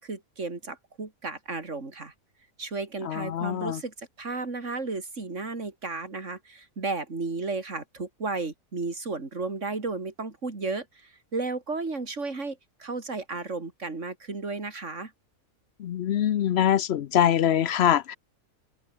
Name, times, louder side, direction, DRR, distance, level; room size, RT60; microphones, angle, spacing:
voice 1, 0.0-2.1 2.6-15.1, right 3 dB, 55° right, 3.6 m, -34 dB
voice 2, 3.1-3.8 15.8-18.2, left 10 dB, 60° left, 0.8 m, -24 dB
open air
omnidirectional pair, 1.5 m